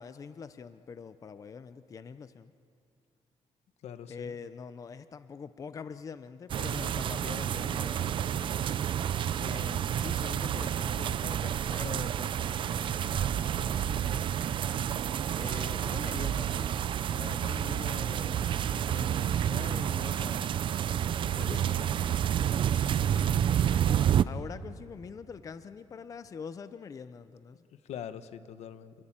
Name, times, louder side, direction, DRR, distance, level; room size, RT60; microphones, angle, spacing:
voice 1, 0.0-2.5 4.1-8.2 9.4-14.3 15.3-16.8 17.1-20.5 21.4-22.1 24.2-27.6, left 6 dB, 30° left, 12 dB, 0.6 m, -44 dB
voice 2, 3.8-4.3 21.4-21.8 23.0-23.3 27.8-28.9, left 9 dB, 70° left, 12 dB, 1.1 m, -43 dB
sound 1, 6.5-24.2, right 9 dB, 45° right, 0.5 m, -29 dB
28.0 x 21.0 x 8.8 m, 2.4 s
cardioid pair, 170°, 12 cm